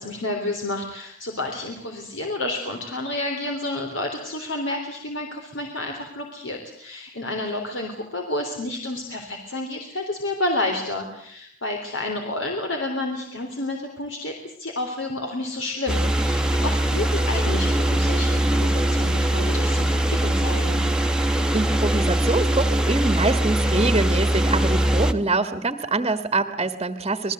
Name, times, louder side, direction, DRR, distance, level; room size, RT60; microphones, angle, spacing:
voice 1, 0.0-20.8, left 2 dB, 70° left, 3 dB, 3.7 m, -30 dB
sound 1, 15.9-25.1, right 1 dB, 5° right, 1.4 m, -21 dB
voice 2, 21.2-27.3, right 3 dB, 25° right, 10 dB, 1.5 m, -25 dB
27.0 x 20.5 x 8.0 m, 0.66 s
head